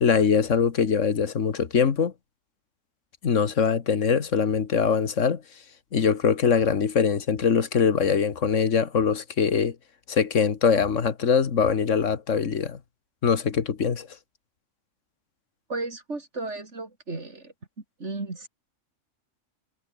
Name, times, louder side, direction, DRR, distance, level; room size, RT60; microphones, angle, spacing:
voice 1, 0.0-2.1 3.2-5.4 5.9-9.8 10.1-12.8 13.2-14.1, left 6 dB, 80° left, 1.9 m, -22 dB
voice 2, 15.7-17.5 18.0-18.5, right 3 dB, 65° right, 3.8 m, -34 dB
omnidirectional pair, 1.3 m